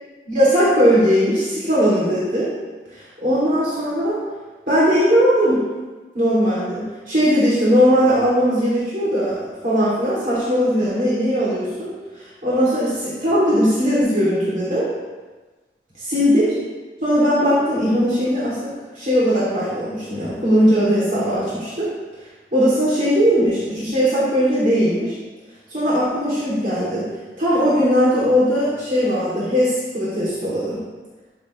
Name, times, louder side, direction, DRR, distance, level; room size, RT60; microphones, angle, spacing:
voice 1, 0.3-2.5 2.9-4.2 4.7-5.6 6.1-14.9 16.1-16.5 17.0-18.7 18.9-21.9 22.5-25.1 25.7-27.0 27.4-30.8, equal, 45° right, -9 dB, 2.7 m, -19 dB
13.0 x 7.2 x 3.1 m, 1.3 s
head